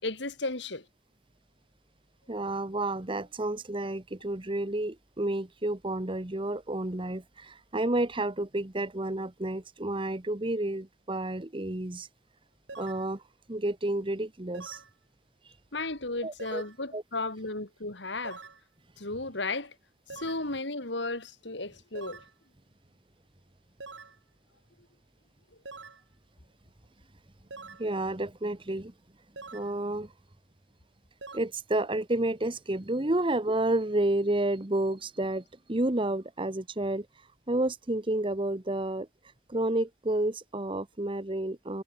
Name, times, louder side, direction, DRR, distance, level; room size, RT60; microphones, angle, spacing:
voice 1, 0.0-0.8 15.7-18.4 19.0-19.7 20.1-22.2, left 2 dB, 65° left, 3.4 m, -34 dB
voice 2, 2.3-12.1 12.8-13.2 13.5-14.8 16.2-16.6 16.9-17.0 27.8-28.9 29.5-30.1 31.3-37.1 37.5-39.1 39.5-41.8, right 1 dB, 25° right, 1.2 m, -30 dB
sound 1, 12.7-13.1 14.5-14.9 16.4-16.8 18.2-18.6 20.1-20.5 22.0-22.3 23.8-24.2 25.7-26.0 27.5-27.9 29.4-29.7 31.2-31.4, right 3 dB, 70° right, 3.0 m, -44 dB
head